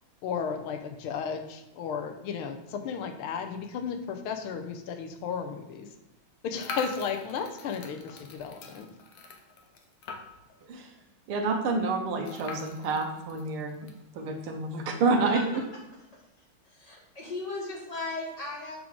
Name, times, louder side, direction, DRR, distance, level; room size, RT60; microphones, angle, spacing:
voice 1, 0.2-5.9 6.4-8.9, left 6 dB, 85° left, 6 dB, 1.5 m, -34 dB
sound 1, 6.5-10.6 11.0-11.1 11.3-11.4 12.2-14.0, left 4 dB, 60° left, 1.0 m, -42 dB
voice 2, 11.3-13.7 14.2-15.4, right 3 dB, 80° right, 3 dB, 1.8 m, -28 dB
voice 3, 16.7-18.8, left 2 dB, 20° left, -3 dB, 1.5 m, -36 dB
7.2 x 3.8 x 4.7 m, 0.97 s
omnidirectional pair, 2.4 m